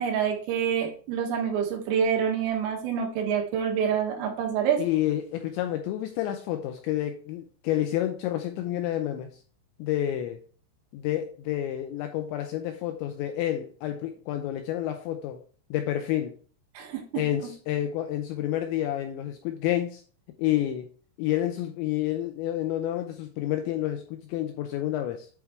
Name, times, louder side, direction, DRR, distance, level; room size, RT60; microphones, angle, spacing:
voice 1, 0.0-4.8 16.8-17.0, right 7 dB, 90° right, 4.0 m, -27 dB
voice 2, 4.8-9.3 9.8-10.4 10.9-15.4 15.7-16.4 17.2-20.0 20.4-20.9 21.2-25.3, left 12 dB, 85° left, 2.6 m, -29 dB
8.4 x 3.6 x 4.4 m
omnidirectional pair, 5.8 m